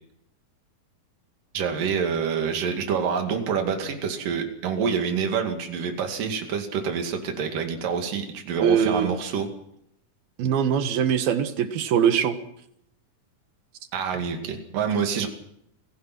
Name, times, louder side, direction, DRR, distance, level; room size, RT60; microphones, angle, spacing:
voice 1, 1.5-9.5 13.9-15.3, right 6 dB, 65° right, 4 dB, 3.9 m, -27 dB
voice 2, 8.6-9.1 10.4-12.4, right 8 dB, 85° right, 9 dB, 3.4 m, -22 dB
28.0 x 16.5 x 6.1 m, 0.75 s
omnidirectional pair, 4.1 m